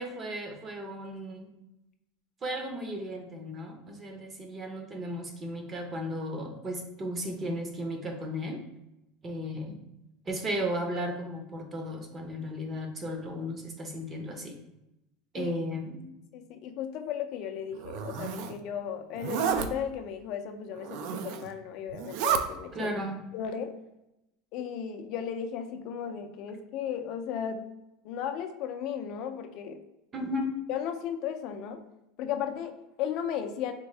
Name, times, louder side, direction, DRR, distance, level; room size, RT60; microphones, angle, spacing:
voice 1, 0.0-1.5 2.4-8.6 9.2-9.8 10.3-14.6 15.3-16.0 22.7-23.2 30.1-30.5, equal, 25° right, 3 dB, 0.6 m, -35 dB
voice 2, 16.3-22.9 23.3-23.8 24.5-27.7 28.0-29.8 30.7-31.8 32.2-33.7, left 8 dB, 55° left, 6 dB, 0.4 m, -35 dB
Zipper (clothing), 17.8-18.5 19.2-19.7 20.8-21.5 21.9-22.4, right 8 dB, 60° right, 0.3 m, -31 dB
3.5 x 2.6 x 3.2 m, 0.90 s
supercardioid pair, 140°, 0 cm